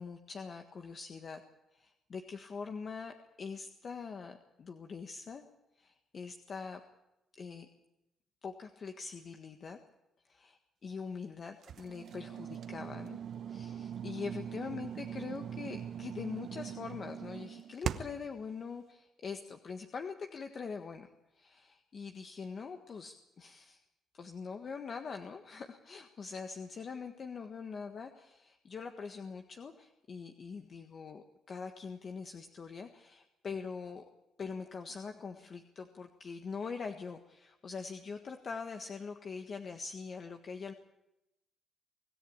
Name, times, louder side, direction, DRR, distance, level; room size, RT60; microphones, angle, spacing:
voice 1, 0.0-1.4 1.7-5.4 5.8-6.8 7.4-7.7 8.4-9.8 10.2-13.2 13.5-23.8 24.1-34.0 34.4-40.7, left 5 dB, 45° left, 5 dB, 1.6 m, -43 dB
sound 1, 11.6-18.3, right 8 dB, 65° right, 1.1 m, -41 dB
25.0 x 14.0 x 8.7 m, 0.91 s
cardioid pair, 90°, 0 cm